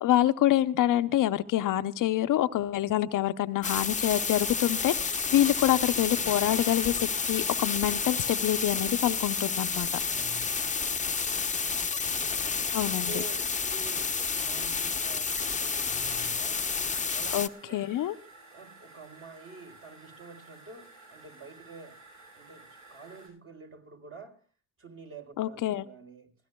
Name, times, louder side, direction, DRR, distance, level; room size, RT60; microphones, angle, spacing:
voice 1, 0.0-9.9 12.7-13.1 17.3-18.2 25.4-25.8, left 13 dB, 70° left, 0.7 m, -26 dB
sound 1, 3.6-17.5, left 5 dB, 20° left, 0.8 m, -30 dB
sound 2, 4.4-4.7 5.8-6.0 6.8-7.1 7.8-8.0 8.8-9.1 9.8-10.1 10.8-11.0 11.7-11.9 12.6-12.8 13.4-13.6 14.2-14.4 15.4-15.6 16.2-16.4, equal, 15° right, 2.3 m, -50 dB
voice 2, 10.0-10.8 12.3-16.7 17.1-17.3 17.6-17.8 18.5-22.0 22.3-24.5 24.8-26.3, right 3 dB, 40° right, 4.1 m, -48 dB
sound 3, 13.1-23.3, right 3 dB, 55° right, 7.7 m, -53 dB
24.0 x 16.0 x 2.3 m
cardioid pair, 85°, 33 cm